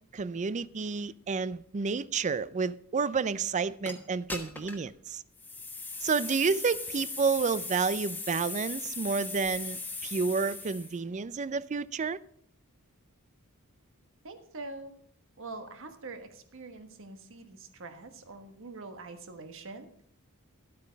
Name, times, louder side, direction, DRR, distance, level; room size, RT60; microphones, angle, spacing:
voice 1, 0.1-5.2 6.0-12.2, right 5 dB, 35° right, 0.4 m, -30 dB
sound 1, 3.9-4.0 4.3-4.9 5.4-11.0, left 3 dB, 10° left, 1.3 m, -38 dB
voice 2, 14.2-14.9 15.4-19.9, right 3 dB, 60° right, 1.3 m, -44 dB
12.0 x 8.5 x 5.1 m
head